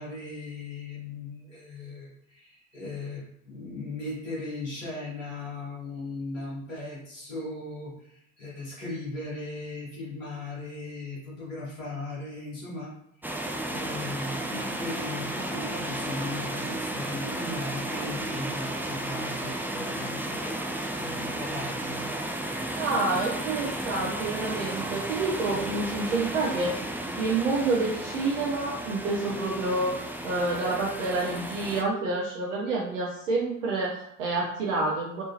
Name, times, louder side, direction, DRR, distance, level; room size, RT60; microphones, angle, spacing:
voice 1, 0.0-12.9 13.7-20.6 21.0-22.1, left 2 dB, 85° left, -8 dB, 1.7 m, -38 dB
sound 1, 13.2-31.8, right 1 dB, 5° right, 0.6 m, -33 dB
voice 2, 22.8-26.7 27.2-35.2, right 3 dB, 80° right, -3 dB, 0.8 m, -28 dB
4.1 x 3.5 x 2.8 m, 0.75 s
figure-of-eight pair, 50°, 37 cm